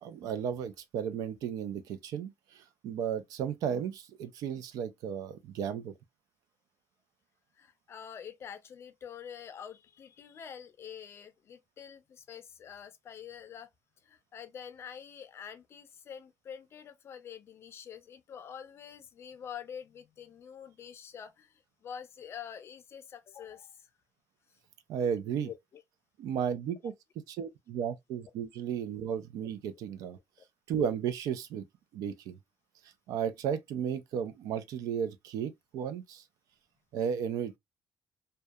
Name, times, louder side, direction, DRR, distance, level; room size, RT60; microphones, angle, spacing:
voice 1, 0.0-5.9 24.9-25.5 26.2-26.9 27.3-30.2 30.7-31.6 31.9-32.4 33.1-36.2 36.9-37.6, right 8 dB, 75° right, 0.5 m, -34 dB
voice 2, 7.6-13.7 14.0-23.9 25.4-25.8, left 8 dB, 45° left, 0.5 m, -46 dB
2.7 x 2.2 x 2.3 m
cardioid pair, 135°, 6 cm